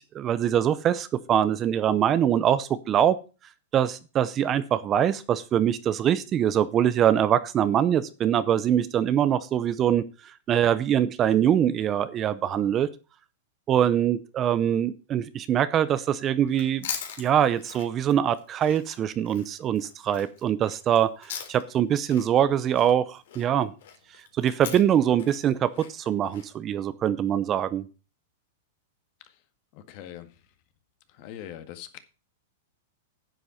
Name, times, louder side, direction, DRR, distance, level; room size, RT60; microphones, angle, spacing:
voice 1, 0.0-3.2 3.7-12.9 13.7-16.9 17.2-23.7 24.3-27.8, right 10 dB, 25° right, 0.7 m, -23 dB
Chewing mastication, 16.5-21.8 22.1-26.5, left 8 dB, 70° left, 3.4 m, -41 dB
voice 2, 29.7-30.3 31.1-32.0, left 11 dB, 45° left, 1.8 m, -42 dB
9.9 x 8.0 x 5.7 m
supercardioid pair, 155°, 0 cm